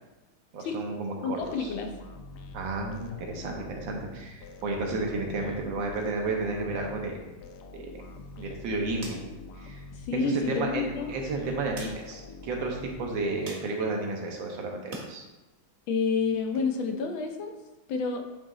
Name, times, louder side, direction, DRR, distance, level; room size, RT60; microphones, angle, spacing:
voice 1, 0.5-1.7 2.5-7.2 7.7-7.8 8.4-9.2 9.6-9.8 10.1-15.2, right 2 dB, 75° right, 1 dB, 1.6 m, -32 dB
voice 2, 1.2-2.0 9.9-11.1 15.9-17.5 17.9-18.2, left 4 dB, 90° left, 4 dB, 1.6 m, -29 dB
sound 1, 1.4-13.6, left 2 dB, 75° left, 1.0 m, -46 dB
sound 2, 7.9-15.1 15.5-16.6, right 2 dB, 40° right, 1.1 m, -49 dB
8.7 x 3.0 x 3.8 m, 1.1 s
omnidirectional pair, 2.1 m